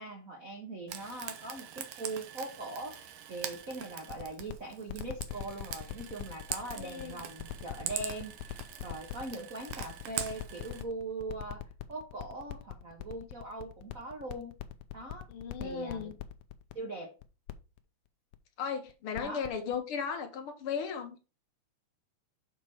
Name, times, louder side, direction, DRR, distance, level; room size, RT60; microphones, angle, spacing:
voice 1, 0.0-11.6 11.9-14.5 14.9-15.3 15.6-16.1 16.7-17.1 19.2-19.4, right 2 dB, 50° right, 1.0 m, -41 dB
Frying (food), 0.9-10.8, right 10 dB, 75° right, 1.4 m, -43 dB
sound 1, 3.4-16.7 17.2-17.5 17.8-17.9 18.3-18.4 18.9-19.5 19.7-19.8, left 15 dB, 85° left, 1.5 m, -41 dB
voice 2, 6.7-7.2 15.3-16.1 18.6-21.2, left 6 dB, 65° left, 1.5 m, -36 dB
6.7 x 4.7 x 4.7 m
omnidirectional pair, 3.6 m